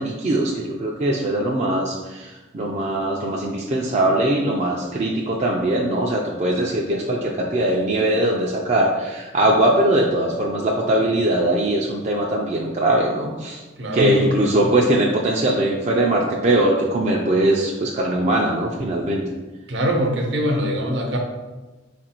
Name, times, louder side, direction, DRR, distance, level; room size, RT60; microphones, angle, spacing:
voice 1, 0.0-13.6 13.9-19.2, right 1 dB, 35° right, -2 dB, 0.4 m, -21 dB
voice 2, 13.8-14.7 19.7-21.2, equal, 65° right, 2 dB, 0.7 m, -23 dB
4.5 x 2.5 x 4.3 m, 1.2 s
head